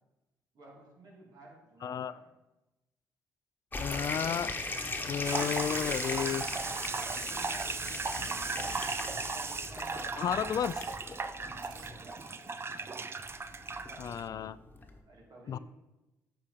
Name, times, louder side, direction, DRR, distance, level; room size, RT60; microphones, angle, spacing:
voice 1, 0.5-2.3 6.1-6.4 6.9-8.6 8.9-10.7 11.3-12.7 13.8-14.1 14.8-15.6, right 2 dB, 60° right, -2 dB, 2.9 m, -54 dB
voice 2, 1.8-2.1 3.8-4.5 5.1-6.4 10.0-10.7 14.0-14.6 15.5-15.6, left 8 dB, 55° left, 16 dB, 0.3 m, -32 dB
sound 1, 3.7-15.0, left 2 dB, 25° left, 1.2 m, -40 dB
sound 2, 5.2-14.2, right 4 dB, 35° right, 0.5 m, -37 dB
sound 3, 5.5-6.4 6.7-7.4 7.6-8.0 8.3-8.4 8.7-9.1 9.3-9.4 9.7-10.1 10.4-10.5 10.7-11.0 11.4-11.9, right 12 dB, 85° right, 0.5 m, -52 dB
8.4 x 5.0 x 5.1 m, 1.0 s
supercardioid pair, 65°, 8 cm